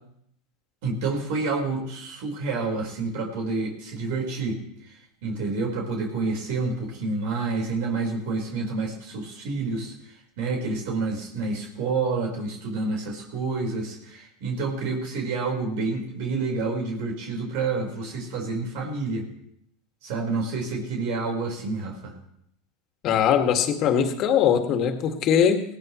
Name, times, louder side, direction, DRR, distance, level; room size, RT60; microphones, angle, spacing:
voice 1, 0.8-4.6 5.2-9.9 10.4-19.3 20.0-22.2, right 3 dB, 65° right, 1 dB, 4.6 m, -28 dB
voice 2, 23.0-25.6, left 8 dB, 45° left, 5 dB, 2.1 m, -21 dB
19.5 x 17.0 x 3.2 m, 0.73 s
supercardioid pair, 110°, 0 cm